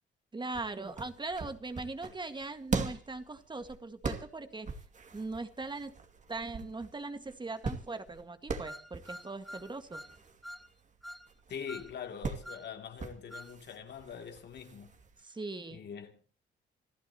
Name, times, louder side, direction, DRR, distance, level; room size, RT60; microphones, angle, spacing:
voice 1, 0.3-4.7 5.1-5.9 6.3-10.0 15.2-15.9, right 3 dB, 25° right, 1.9 m, -40 dB
sound 1, 0.5-15.2, right 4 dB, 40° right, 2.4 m, -41 dB
sound 2, 8.6-10.2 10.4-10.7 11.0-11.3 11.7-11.9 12.4-12.7 13.3-13.5, equal, ahead, 1.4 m, -46 dB
voice 2, 11.5-14.9 15.7-16.1, left 7 dB, 60° left, 2.9 m, -43 dB
27.0 x 15.5 x 3.0 m
cardioid pair, 90°, 20 cm